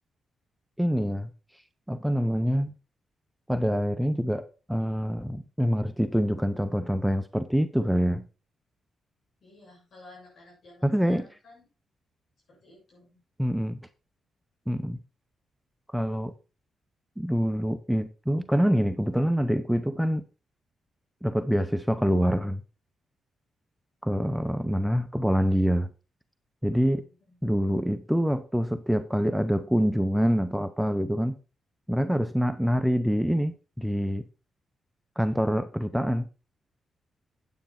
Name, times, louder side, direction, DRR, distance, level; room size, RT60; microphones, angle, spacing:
voice 1, 0.8-1.3 1.9-2.7 3.5-8.3 10.8-11.2 13.4-13.8 14.7-15.0 15.9-16.3 17.2-20.2 21.2-22.6 24.0-25.9 26.6-27.0 27.4-31.3 31.9-34.2 35.2-36.3, equal, 5° right, 0.7 m, -25 dB
voice 2, 9.4-11.7 12.5-13.2 26.6-27.4, left 2 dB, 60° left, 7.1 m, -54 dB
9.3 x 8.6 x 4.3 m
cardioid pair, 95°, 0 cm